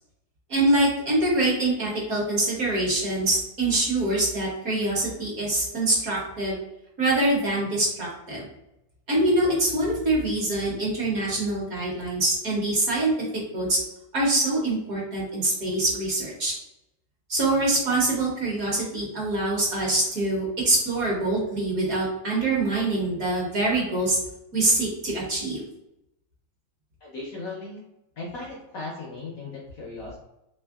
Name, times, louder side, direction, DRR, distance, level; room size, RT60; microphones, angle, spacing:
voice 1, 0.5-6.6 7.0-8.5 9.1-13.1 13.5-13.8 14.1-16.5 17.3-24.2 24.5-25.6, right 2 dB, 55° right, -3 dB, 1.1 m, -24 dB
voice 2, 27.0-27.8 28.2-30.2, left 3 dB, 70° left, -3 dB, 0.8 m, -37 dB
3.4 x 3.3 x 2.3 m, 0.86 s
omnidirectional pair, 2.1 m